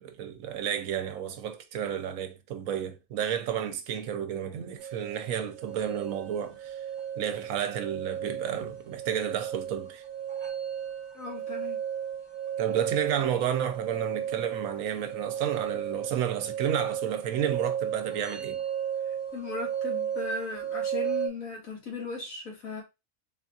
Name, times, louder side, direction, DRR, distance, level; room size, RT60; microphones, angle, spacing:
voice 1, 0.0-6.8 7.2-10.0 12.6-18.6, right 9 dB, 80° right, 1.0 m, -31 dB
sound 1, 4.8-21.3, right 9 dB, 45° right, 0.3 m, -34 dB
voice 2, 11.1-11.8 19.3-22.8, left 3 dB, 75° left, 2.0 m, -37 dB
3.8 x 3.4 x 2.7 m
omnidirectional pair, 1.4 m